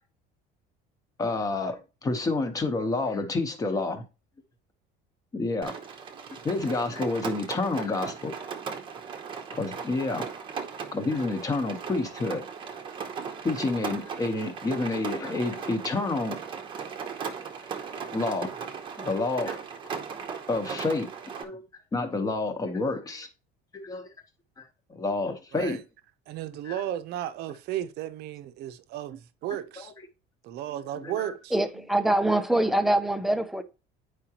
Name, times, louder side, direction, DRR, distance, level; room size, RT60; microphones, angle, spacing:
voice 1, 1.2-4.0 5.3-5.7 6.4-8.4 9.5-10.3 10.9-12.4 13.4-16.4 17.3-17.4 18.0-18.6 19.0-19.6 20.5-21.1 21.4-21.6 21.9-23.3 23.7-24.1 24.6-24.7 24.9-25.8 26.6-26.8 29.8-29.9 31.0-31.3, left 3 dB, 20° left, 1.0 m, -29 dB
Rain, 5.6-21.4, right 6 dB, 25° right, 0.8 m, -37 dB
voice 2, 26.3-29.9 30.4-31.9, right 12 dB, 60° right, 0.7 m, -34 dB
voice 3, 31.5-33.6, right 1 dB, ahead, 0.4 m, -24 dB
8.9 x 4.9 x 2.9 m
cardioid pair, 170°, 19 cm